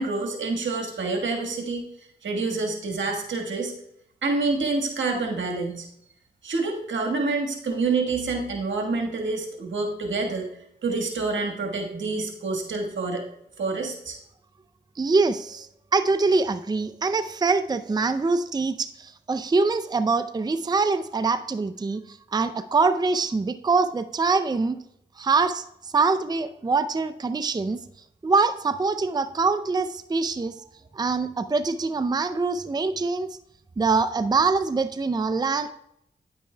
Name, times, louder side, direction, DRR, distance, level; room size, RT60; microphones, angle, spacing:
voice 1, 0.0-1.8 2.2-3.7 4.2-5.9 6.4-10.5 10.8-13.2 13.6-14.2, right 3 dB, 80° right, 2 dB, 1.5 m, -27 dB
voice 2, 15.0-24.8 25.2-27.8 28.2-30.6 30.9-33.3 33.8-35.7, right 4 dB, 20° right, 12 dB, 0.5 m, -24 dB
9.5 x 8.8 x 2.2 m, 0.76 s
cardioid pair, 40°, 19 cm